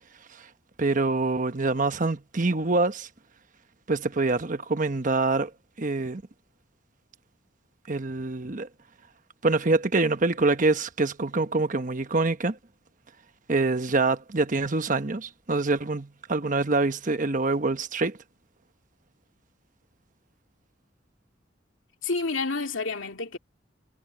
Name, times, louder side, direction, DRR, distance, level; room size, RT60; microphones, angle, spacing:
voice 1, 0.8-3.1 3.9-5.5 5.8-6.2 7.9-8.7 9.4-12.6 13.5-18.2, right 3 dB, 40° right, 1.1 m, -25 dB
voice 2, 22.0-23.4, left 3 dB, 85° left, 2.4 m, -29 dB
head